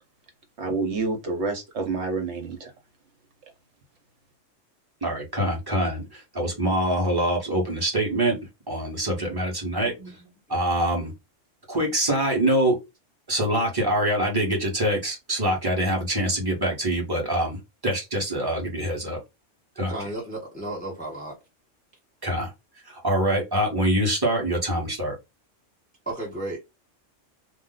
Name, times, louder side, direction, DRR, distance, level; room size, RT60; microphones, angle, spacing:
voice 1, 0.6-2.7, right 3 dB, 65° right, 1.1 m, -28 dB
voice 2, 5.0-8.4 8.7-10.2 10.5-11.1 11.7-12.8 13.3-19.2 19.8-19.9 22.2-22.5 22.9-25.2, right 1 dB, 20° right, 1.0 m, -25 dB
voice 3, 19.9-21.4 26.1-26.6, right 1 dB, 5° left, 0.9 m, -33 dB
2.6 x 2.0 x 3.9 m
omnidirectional pair, 1.3 m